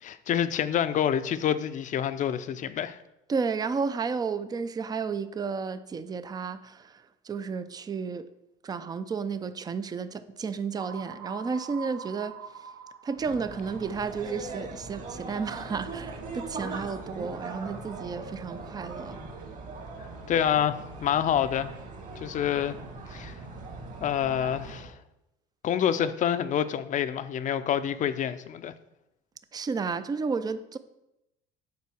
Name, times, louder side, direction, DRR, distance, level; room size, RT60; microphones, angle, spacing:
voice 1, 0.0-3.0 20.3-21.7 22.2-22.8 23.1-23.4 24.0-24.9 25.6-28.7, left 9 dB, 40° left, 0.6 m, -27 dB
voice 2, 3.3-8.3 8.6-12.7 13.0-19.2 29.5-30.8, right 5 dB, 20° right, 0.5 m, -32 dB
sound 1, 10.8-14.7, right 6 dB, 60° right, 0.8 m, -44 dB
sound 2, 13.1-24.9, right 3 dB, 40° right, 2.0 m, -40 dB
8.5 x 4.3 x 6.2 m
cardioid pair, 115°, 20 cm